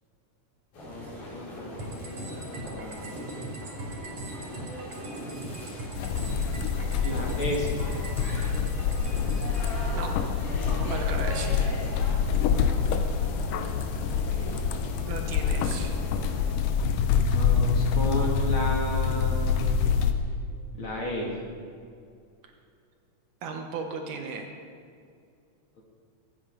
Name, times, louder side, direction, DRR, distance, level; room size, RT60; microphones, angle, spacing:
sound 1, 0.7-16.6, equal, 70° left, 5.6 m, -40 dB
voice 1, 0.8-3.3 7.0-7.9 14.1-14.6 17.3-19.6 20.1-20.2 20.7-21.4 25.7-25.8, left 1 dB, 45° left, -1 dB, 2.5 m, -34 dB
sound 2, 1.8-9.8, right 1 dB, 55° right, 3.7 m, -39 dB
sound 3, 6.0-20.1, left 6 dB, 85° left, 2.5 m, -26 dB
voice 2, 10.8-11.8 15.1-16.0 23.4-24.5, right 5 dB, 75° right, 3 dB, 2.8 m, -35 dB
23.5 x 9.5 x 5.3 m, 2.3 s
omnidirectional pair, 3.8 m